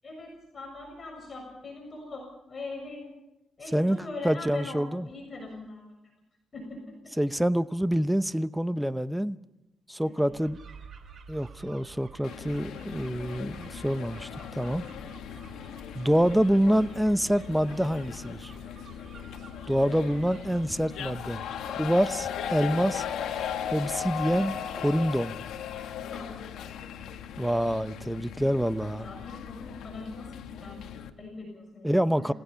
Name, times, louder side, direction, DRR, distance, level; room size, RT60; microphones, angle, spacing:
voice 1, 0.0-3.1 3.6-5.9 6.5-6.8 10.0-10.3 25.9-26.4 29.0-32.3, left 3 dB, 35° left, 6.9 m, -42 dB
voice 2, 4.2-5.1 7.2-9.4 9.9-10.6 11.3-14.8 15.9-18.5 19.7-21.4 21.8-23.0 23.7-25.3 27.4-29.1 31.8-32.3, equal, 5° right, 0.8 m, -26 dB
sound 1, 10.3-24.5, right 5 dB, 50° right, 2.9 m, -51 dB
sound 2, 12.2-31.1, left 8 dB, 75° left, 1.6 m, -38 dB
30.0 x 16.5 x 5.8 m
cardioid pair, 90°, 0 cm